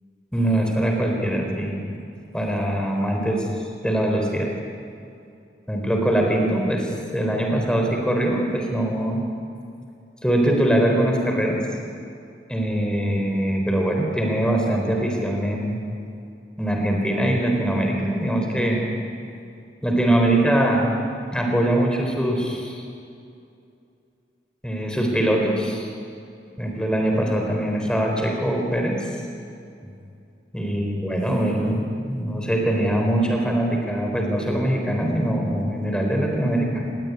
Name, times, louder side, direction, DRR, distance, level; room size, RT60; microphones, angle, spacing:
voice 1, 0.3-1.8 2.3-3.5 3.8-4.5 5.7-9.2 10.2-11.6 12.5-15.8 16.6-18.9 19.8-20.9 21.3-22.8 24.6-25.9 26.6-29.1 30.5-36.8, right 1 dB, 5° left, 1 dB, 3.9 m, -22 dB
28.0 x 20.5 x 9.8 m, 2.5 s
head